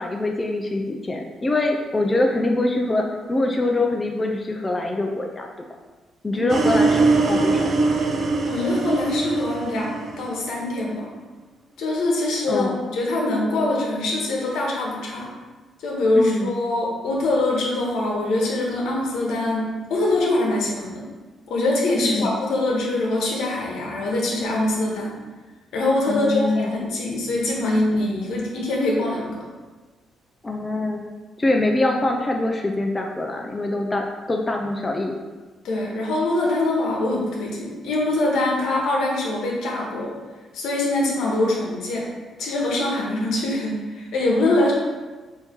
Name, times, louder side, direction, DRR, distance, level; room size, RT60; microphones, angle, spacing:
voice 1, 0.0-5.5 6.2-8.0 12.5-12.8 16.1-16.6 22.0-22.3 26.1-26.8 30.4-31.0 31.4-35.2, left 2 dB, 20° left, 1 dB, 0.4 m, -24 dB
sound 1, 6.5-10.6, right 3 dB, 50° right, 0.5 m, -22 dB
voice 2, 8.5-11.1 11.8-15.3 15.8-21.1 21.5-25.1 25.7-29.4 35.6-40.1 40.5-42.1 42.4-44.7, left 2 dB, 80° left, -2 dB, 1.0 m, -23 dB
4.4 x 2.7 x 3.5 m, 1.3 s
cardioid pair, 90°, 0 cm